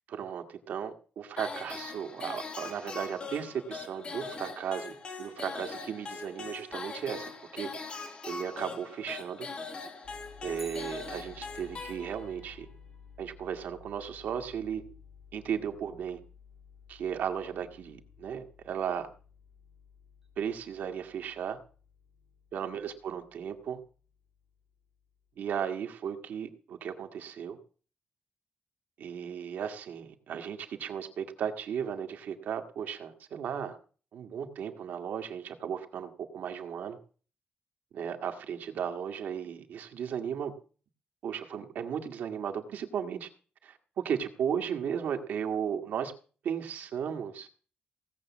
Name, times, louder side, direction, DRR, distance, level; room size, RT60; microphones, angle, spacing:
voice 1, 0.1-9.5 10.4-12.7 13.2-14.8 15.3-16.2 16.9-19.1 20.4-21.6 22.5-23.8 25.4-27.6 29.0-33.8 34.1-37.0 37.9-40.5 41.2-43.3 43.6-46.1 46.4-47.5, right 8 dB, 75° right, 6 dB, 1.8 m, -35 dB
sound 1, 1.4-12.5, left 4 dB, 35° left, 2.9 m, -41 dB
sound 2, 10.0-25.2, left 7 dB, 55° left, 3.8 m, -55 dB
Bicycle, 10.5-11.9 20.2-20.3, right 1 dB, 10° right, 2.3 m, -52 dB
17.5 x 7.3 x 7.3 m, 0.40 s
wide cardioid pair, 170°, 3 cm